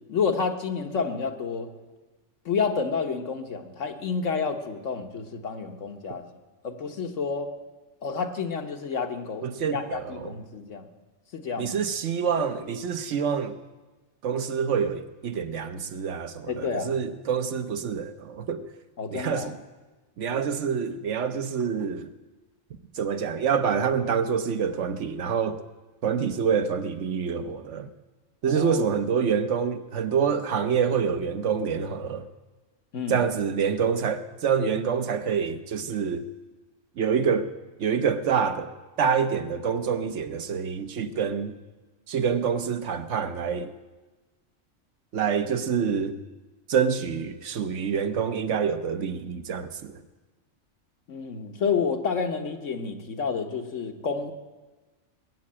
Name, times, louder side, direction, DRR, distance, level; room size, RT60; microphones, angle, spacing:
voice 1, 0.1-1.7 2.4-6.3 6.6-7.5 8.0-9.4 9.7-10.9 11.3-11.8 16.5-16.9 19.0-19.5 28.4-28.8 32.9-33.2 51.1-54.3, left 5 dB, 90° left, 1.5 m, -29 dB
voice 2, 9.4-10.3 11.6-13.5 14.2-18.6 19.1-19.6 20.2-22.1 22.9-25.6 26.0-27.9 28.4-32.3 33.1-36.3 37.0-37.5 37.8-38.7 39.0-41.5 42.1-43.7 45.1-46.2 46.7-50.0, right 6 dB, 75° right, 1.2 m, -26 dB
19.5 x 7.7 x 8.6 m
omnidirectional pair, 1.2 m